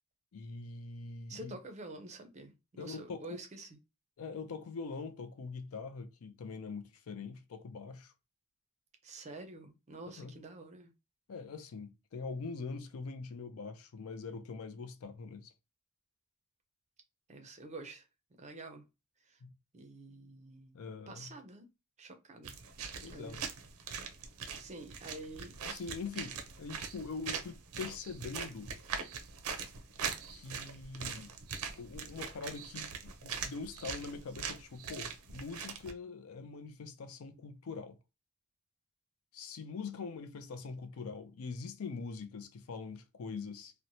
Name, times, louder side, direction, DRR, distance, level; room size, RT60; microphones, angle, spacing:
voice 1, 0.3-1.6 2.8-3.3 4.2-8.1 10.2-10.3 11.3-15.5 19.4-19.5 20.7-21.4 23.0-23.4 25.6-28.7 30.3-31.3 31.8-38.0 39.3-43.7, left 4 dB, 65° left, 0.4 m, -43 dB
voice 2, 1.3-3.7 9.0-10.9 17.3-18.0 18.4-18.8 19.3-19.4 19.7-20.8 21.1-21.7 22.0-22.6 23.1-23.5 24.6-25.6, right 2 dB, 30° right, 0.5 m, -48 dB
sound 1, 22.4-35.9, right 6 dB, 80° right, 0.5 m, -42 dB
2.9 x 2.1 x 2.6 m
head